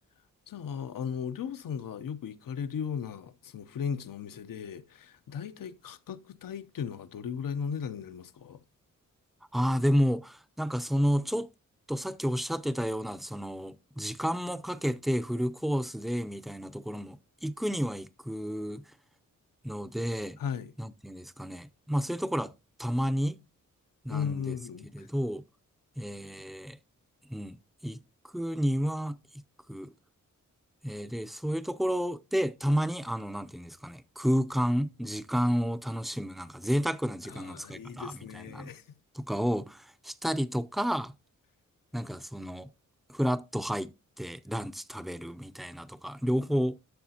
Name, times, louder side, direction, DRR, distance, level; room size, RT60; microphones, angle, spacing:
voice 1, 0.5-8.6 20.4-20.7 24.1-25.1 37.3-38.8, left 7 dB, 90° left, 0.8 m, -36 dB
voice 2, 9.5-11.5 11.9-18.8 19.6-20.4 20.8-22.5 22.8-23.4 24.0-24.5 24.9-25.4 26.0-26.8 27.3-27.6 27.8-28.0 28.3-29.2 29.7-29.9 30.8-38.7 39.1-41.1 41.9-42.7 43.1-43.9 44.2-46.8, equal, ahead, 0.4 m, -31 dB
11.5 x 7.0 x 2.8 m
wide cardioid pair, 95°, 32 cm